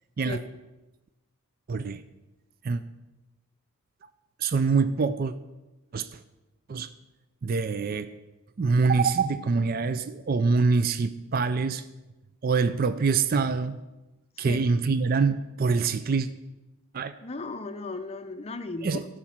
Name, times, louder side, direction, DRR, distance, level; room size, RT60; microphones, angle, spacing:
voice 1, 1.7-2.0 2.6-2.8 4.4-5.3 5.9-6.2 6.7-6.9 7.4-8.1 8.6-11.8 12.4-13.8 14.4-16.3 16.9-17.1 18.8-19.0, right 4 dB, 40° right, 12 dB, 0.4 m, -25 dB
voice 2, 17.2-19.1, left 3 dB, 30° left, 8 dB, 0.6 m, -36 dB
13.5 x 5.0 x 7.2 m, 1.0 s
head